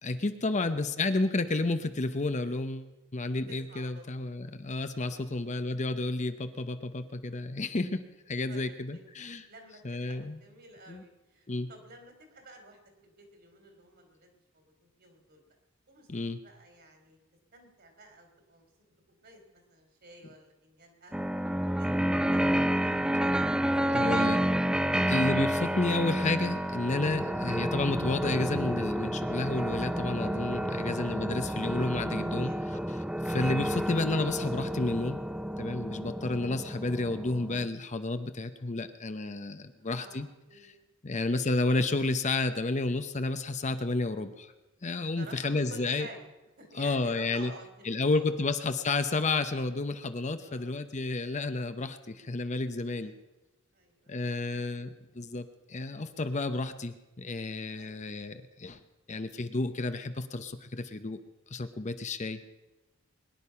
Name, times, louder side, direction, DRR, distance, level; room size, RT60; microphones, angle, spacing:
voice 1, 0.0-9.5 9.8-10.4 10.9-11.0 11.5-11.7 16.1-16.4 23.3-23.4 23.9-24.4 25.1-32.5 33.3-35.2 35.6-40.3 40.6-40.7 41.0-44.5 44.8-46.1 46.8-47.5 47.8-53.1 54.1-58.8 59.1-61.2 61.5-62.5, left 2 dB, 35° left, 10 dB, 0.8 m, -31 dB
voice 2, 3.5-4.3 5.1-5.4 8.5-9.0 9.5-15.4 15.9-16.1 16.4-17.2 17.5-22.5 23.0-23.3 30.8-31.1 32.4-32.9 35.9-36.1 39.8-40.2 40.5-41.4 45.2-46.2 46.6-48.5 50.4-50.7 53.0-53.3 53.7-54.6 54.9-55.1 55.9-56.1 57.8-58.0, right 2 dB, 50° right, 5 dB, 3.1 m, -53 dB
sound 1, 21.1-37.7, equal, 5° right, 0.5 m, -30 dB
22.5 x 10.5 x 5.7 m, 1.0 s
head